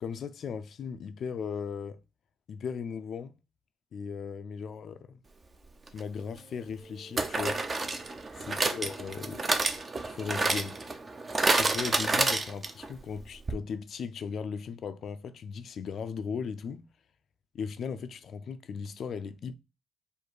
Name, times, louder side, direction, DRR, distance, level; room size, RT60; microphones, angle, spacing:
voice 1, 0.0-2.0 2.5-3.3 3.9-5.2 5.9-7.6 8.3-9.5 10.0-10.8 11.5-16.8 17.5-19.6, left 6 dB, 60° left, 0.4 m, -37 dB
sound 1, 5.9-6.0 7.2-12.9 13.2-13.3 13.5-13.6, right 3 dB, 35° right, 0.7 m, -29 dB
4.5 x 2.5 x 4.6 m
cardioid pair, 90°, 0 cm